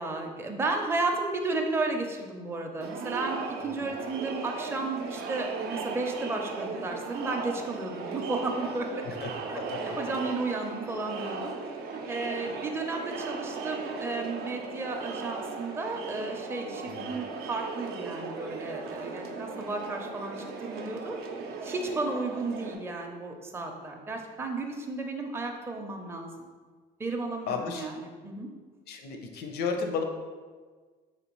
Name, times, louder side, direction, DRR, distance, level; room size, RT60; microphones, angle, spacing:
voice 1, 0.0-9.0 9.5-11.5 11.9-21.2 21.6-26.4 27.0-28.5, right 3 dB, 15° right, 2 dB, 0.5 m, -33 dB
Crowd, 2.8-22.8, right 4 dB, 70° right, 0.5 m, -37 dB
voice 2, 27.5-27.9 28.9-30.0, left 5 dB, 70° left, 4 dB, 0.6 m, -33 dB
4.2 x 3.3 x 3.0 m, 1.5 s
cardioid pair, 110°, 17 cm